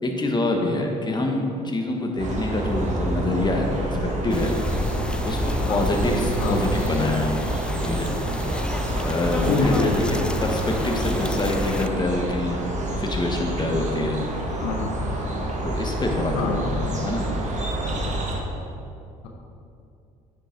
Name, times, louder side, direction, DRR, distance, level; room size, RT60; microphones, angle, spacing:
voice 1, 0.0-4.6 5.2-7.4 7.8-8.1 9.0-12.6 13.0-14.2 15.6-17.3, left 2 dB, 20° left, 2 dB, 1.3 m, -26 dB
sound 1, 2.2-18.4, right 1 dB, 40° right, 1.5 m, -28 dB
sound 2, 4.3-11.9, left 1 dB, 5° left, 0.3 m, -30 dB
voice 2, 9.4-10.2 14.6-15.1 16.3-16.8, left 3 dB, 70° left, 1 dB, 1.0 m, -26 dB
9.4 x 5.1 x 4.5 m, 2.6 s
hypercardioid pair, 60°, 19 cm